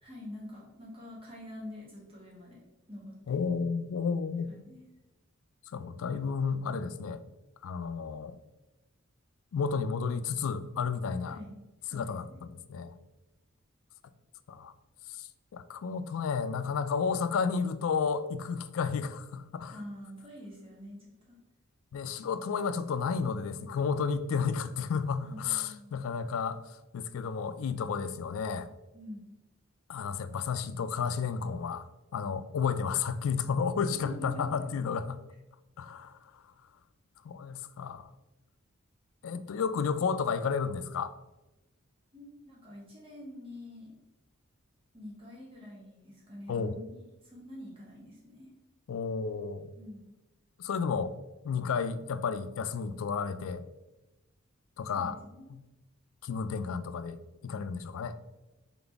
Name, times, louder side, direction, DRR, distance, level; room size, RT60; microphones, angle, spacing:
voice 1, 0.0-2.6 2.9-3.4 4.5-4.8 11.3-11.6 11.8-12.4 19.7-21.4 25.2-26.0 28.9-29.2 33.9-34.7 42.1-43.9 44.9-48.5 49.7-50.1 54.9-55.5, left 1 dB, 25° right, 1.5 m, -46 dB
voice 2, 3.3-4.5 5.7-7.2 7.6-8.4 9.5-11.4 11.9-12.2 12.7-12.9 14.5-14.7 15.2-19.8 21.9-26.6 26.9-28.7 29.9-31.9 32.1-35.2 35.8-36.2 37.2-38.0 39.2-41.1 46.5-46.7 48.9-49.7 50.6-51.1 51.4-53.6 54.8-55.2 55.5-55.6 56.2-58.2, left 5 dB, 80° left, 0.3 m, -32 dB
4.0 x 3.9 x 3.4 m
head